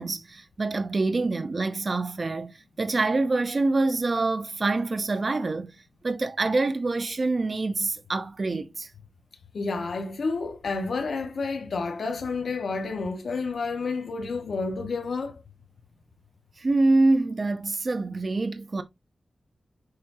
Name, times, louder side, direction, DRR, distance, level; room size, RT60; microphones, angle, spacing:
voice 1, 0.0-5.7 6.0-8.9 16.6-18.8, right 3 dB, 40° right, 0.8 m, -26 dB
voice 2, 9.5-15.4, left 4 dB, 70° left, 1.3 m, -30 dB
6.8 x 5.2 x 2.7 m
wide cardioid pair, 110°, 0 cm